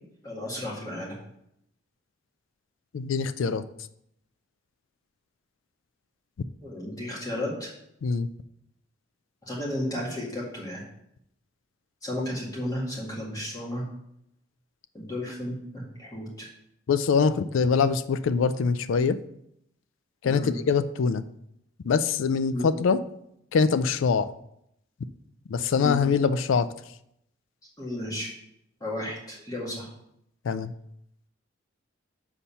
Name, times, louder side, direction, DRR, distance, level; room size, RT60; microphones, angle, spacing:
voice 1, 0.2-1.2 6.6-7.7 9.4-10.8 12.0-13.8 14.9-16.5 20.2-20.5 22.5-22.7 25.7-26.0 27.8-28.3 28.8-29.9, left 1 dB, 20° left, -4 dB, 2.0 m, -33 dB
voice 2, 2.9-3.6 8.0-8.3 16.9-19.2 20.2-21.2 21.8-23.0 23.5-24.3 25.5-26.7 30.4-30.7, left 5 dB, 75° left, 13 dB, 0.4 m, -23 dB
7.1 x 4.2 x 5.5 m, 0.76 s
head